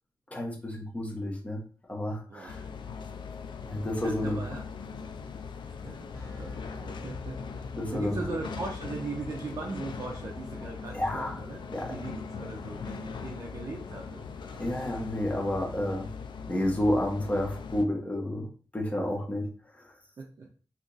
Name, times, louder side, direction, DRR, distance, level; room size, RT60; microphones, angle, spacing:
voice 1, 0.3-1.6 1.9-2.6 3.6-4.4 7.0-7.1 7.7-8.2 10.9-11.4 11.7-11.9 14.6-16.1 16.5-18.5 18.7-19.4 19.7-19.8, left 1 dB, 20° left, -1 dB, 0.9 m, -30 dB
voice 2, 2.3-2.6 4.0-4.6 5.8-11.6 11.9-14.7 20.2-20.5, right 3 dB, 45° right, 0 dB, 0.5 m, -39 dB
sound 1, 2.5-17.9, left 5 dB, 85° left, 0.4 m, -40 dB
Keyboard (musical), 6.1-16.4, left 3 dB, 50° left, 1.5 m, -48 dB
2.9 x 2.5 x 3.9 m, 0.40 s
wide cardioid pair, 155°, 8 cm